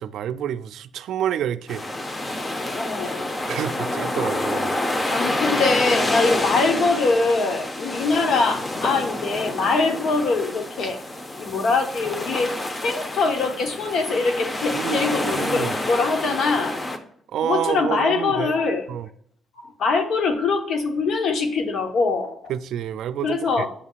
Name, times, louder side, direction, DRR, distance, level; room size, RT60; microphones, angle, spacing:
voice 1, 0.0-1.8 2.2-2.3 3.5-4.8 14.7-15.7 17.3-18.6 18.9-19.1 22.5-23.7, right 10 dB, 75° right, 0.3 m, -28 dB
sound 1, 1.7-17.0, left 1 dB, 25° left, 0.8 m, -28 dB
voice 2, 2.8-3.3 4.2-4.3 5.1-11.0 11.4-12.5 12.8-16.8 17.4-18.9 19.6-22.4 23.2-23.7, left 4 dB, 70° left, 1.1 m, -23 dB
8.3 x 5.5 x 2.4 m
cardioid pair, 90°, 0 cm